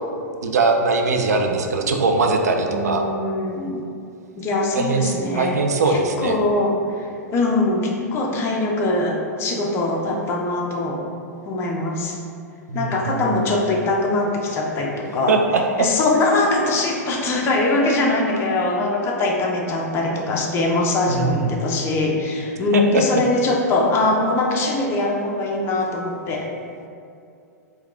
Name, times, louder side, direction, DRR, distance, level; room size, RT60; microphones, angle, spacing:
voice 1, 0.4-3.1 4.7-6.4 12.7-13.2 15.3-15.9 21.1-21.5 22.7-23.0, right 3 dB, 70° right, 3 dB, 0.4 m, -21 dB
voice 2, 2.6-3.8 4.4-5.6 5.9-11.0 11.5-12.2 12.7-15.4 15.8-26.5, left 2 dB, 25° left, -1 dB, 0.5 m, -22 dB
4.5 x 2.2 x 2.4 m, 2.5 s
figure-of-eight pair, 105°, 9 cm